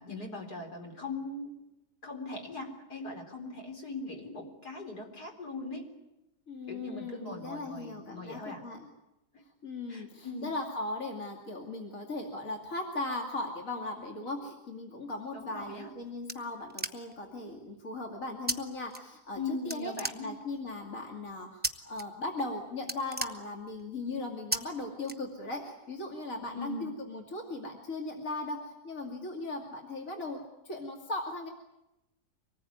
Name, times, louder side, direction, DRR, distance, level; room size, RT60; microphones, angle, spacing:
voice 1, 0.0-1.5 2.0-5.8 6.7-8.6 9.9-10.5 15.3-15.9 19.3-20.3 26.5-26.9, left 2 dB, 80° left, 3 dB, 4.6 m, -40 dB
voice 2, 6.5-8.9 9.6-31.5, left 2 dB, 55° left, 2 dB, 2.9 m, -38 dB
sound 1, 15.6-17.3 18.5-18.6 18.9-19.4 19.7-20.7 21.6-22.0 22.4-22.5 22.8-23.9 24.5-24.6 25.0-25.7, right 1 dB, 5° right, 0.9 m, -35 dB
25.0 x 19.5 x 9.4 m, 0.94 s
omnidirectional pair, 1.7 m